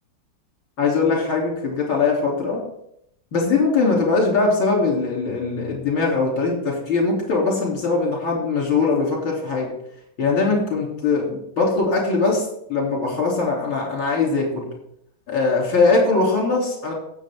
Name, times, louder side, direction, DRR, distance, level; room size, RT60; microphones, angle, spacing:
voice 1, 0.8-2.6 3.3-9.7 10.2-14.7 15.3-16.9, left 4 dB, 70° left, -2 dB, 4.3 m, -21 dB
17.0 x 7.0 x 3.8 m, 0.73 s
omnidirectional pair, 2.3 m